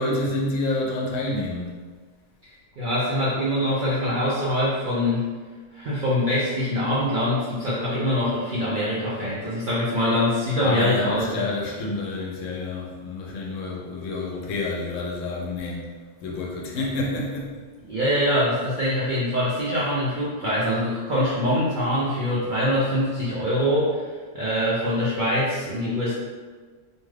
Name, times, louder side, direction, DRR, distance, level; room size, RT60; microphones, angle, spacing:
voice 1, 0.0-1.8 10.6-15.9 16.2-17.5, left 2 dB, 70° left, -2 dB, 0.9 m, -28 dB
voice 2, 2.8-5.2 5.7-11.4 17.9-24.0 24.3-26.1, left 1 dB, 60° right, -8 dB, 0.5 m, -24 dB
2.6 x 2.3 x 3.2 m, 1.5 s
omnidirectional pair, 1.4 m